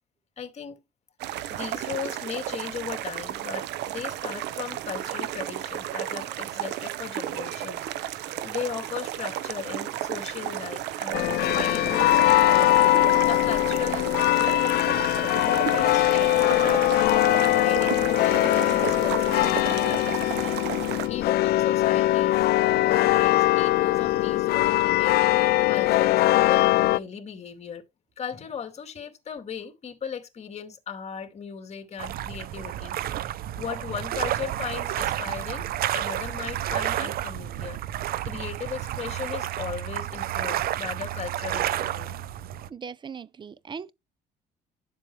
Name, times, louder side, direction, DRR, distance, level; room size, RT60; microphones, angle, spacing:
voice 1, 0.4-0.8 1.5-12.7 13.2-14.8 15.4-17.1 17.5-25.2 25.6-27.8 28.2-33.0 33.5-35.7 35.9-37.8 38.2-42.1, left 7 dB, 40° left, 2.4 m, -37 dB
sound 1, 1.2-21.1, right 13 dB, 85° right, 0.9 m, -33 dB
sound 2, 11.1-27.0, left 16 dB, 70° left, 0.5 m, -21 dB
sound 3, 32.0-42.7, right 12 dB, 65° right, 0.6 m, -30 dB
voice 2, 42.7-43.9, right 6 dB, 30° right, 0.7 m, -39 dB
11.0 x 7.4 x 3.2 m
cardioid pair, 110°, 17 cm